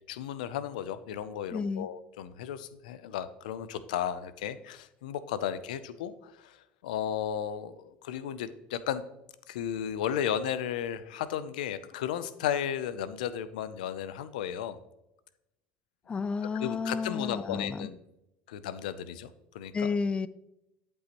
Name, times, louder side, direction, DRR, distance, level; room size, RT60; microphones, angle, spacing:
voice 1, 0.1-6.6 6.8-9.1 9.5-14.8 16.6-18.0 18.5-19.9, left 9 dB, 90° left, 14 dB, 0.6 m, -34 dB
voice 2, 1.5-1.9 16.1-17.9 19.7-20.3, left 5 dB, 25° left, 16 dB, 0.4 m, -31 dB
11.5 x 5.3 x 3.0 m, 0.87 s
supercardioid pair, 85°, 4 cm